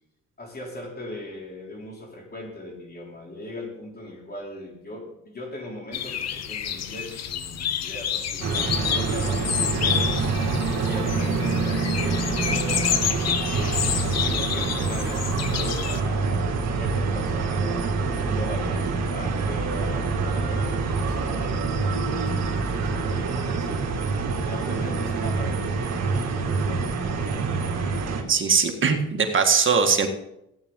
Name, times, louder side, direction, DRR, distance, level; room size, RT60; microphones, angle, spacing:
voice 1, 0.4-10.4 10.7-12.9 13.4-23.9 24.4-27.6, left 1 dB, 30° left, 0 dB, 3.5 m, -39 dB
sound 1, 5.9-16.0, left 9 dB, 55° left, 0.9 m, -29 dB
sound 2, 8.4-28.2, right 4 dB, 60° right, 2.2 m, -26 dB
voice 2, 28.3-30.1, right 5 dB, 40° right, 4 dB, 1.8 m, -20 dB
15.5 x 8.8 x 3.8 m, 0.83 s
cardioid pair, 90°, 30 cm